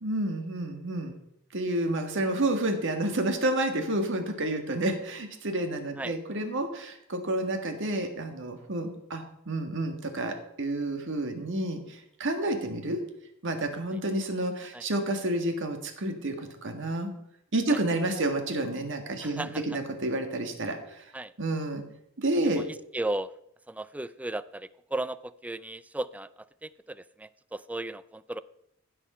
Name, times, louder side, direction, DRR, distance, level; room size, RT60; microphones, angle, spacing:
voice 1, 0.0-1.2 1.5-13.0 13.4-17.1 17.5-21.0 21.4-21.8 22.2-22.6, right 1 dB, 60° right, 5 dB, 1.8 m, -30 dB
voice 2, 19.2-19.6 21.1-21.3 22.6-22.7 22.9-23.3 23.7-26.3 26.6-28.4, right 2 dB, 5° right, 16 dB, 0.3 m, -35 dB
15.5 x 6.4 x 5.6 m, 0.77 s
head